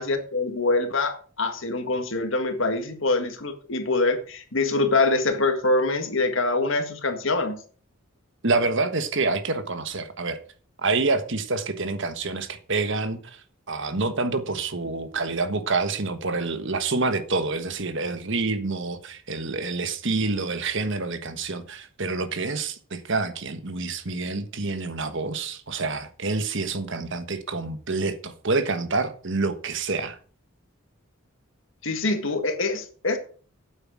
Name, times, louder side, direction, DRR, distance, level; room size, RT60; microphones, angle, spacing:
voice 1, 0.0-7.6 31.8-33.2, left 3 dB, 65° left, 1.8 m, -24 dB
voice 2, 8.4-10.4 10.8-13.4 13.7-30.2, right 3 dB, 60° right, 1.4 m, -27 dB
9.3 x 8.2 x 6.3 m
head